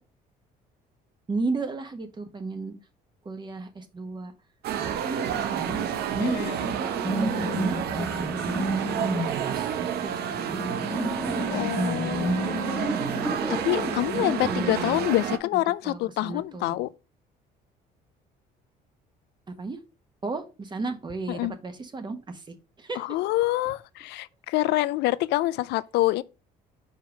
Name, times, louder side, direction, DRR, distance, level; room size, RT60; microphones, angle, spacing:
voice 1, 1.3-2.7 3.2-4.3 4.8-9.7 10.0-11.0 14.1-15.0 15.8-16.8 19.5-19.8 20.2-23.0, right 3 dB, 25° right, 1.3 m, -34 dB
sound 1, 4.6-15.4, right 9 dB, 70° right, 0.9 m, -30 dB
voice 2, 6.2-6.6 11.5-12.9 13.6-16.9 21.3-21.5 23.0-26.2, left 17 dB, 80° left, 0.5 m, -26 dB
sound 2, 6.8-14.7, right 1 dB, ahead, 1.4 m, -31 dB
5.6 x 5.1 x 5.2 m
cardioid pair, 110°, 17 cm